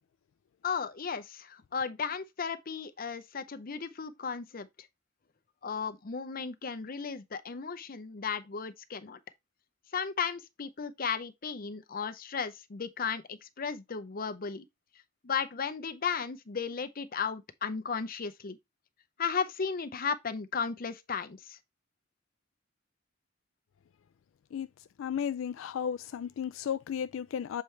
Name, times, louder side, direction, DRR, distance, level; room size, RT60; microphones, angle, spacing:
voice 1, 0.6-4.7 5.6-9.2 9.9-14.6 15.2-18.6 19.2-21.6, left 6 dB, 45° left, 0.7 m, -35 dB
voice 2, 25.0-27.6, left 8 dB, 80° left, 0.3 m, -34 dB
7.4 x 4.6 x 3.2 m
head